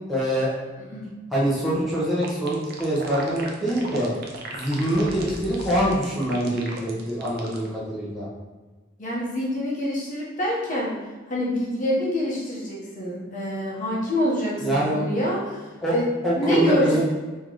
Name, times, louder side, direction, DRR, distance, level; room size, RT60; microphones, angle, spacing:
voice 1, 0.1-0.5 1.3-4.1 4.5-8.3 14.6-15.0 15.8-17.0, right 1 dB, ahead, -9 dB, 1.0 m, -24 dB
sound 1, 2.2-7.7, right 3 dB, 55° right, 0.6 m, -37 dB
sound 2, 4.8-6.4, left 1 dB, 60° left, 0.4 m, -38 dB
voice 2, 9.0-11.0 11.3-15.6 15.9-16.1 16.4-17.0, equal, 45° left, -5 dB, 1.0 m, -26 dB
3.4 x 3.1 x 3.8 m, 1.3 s
head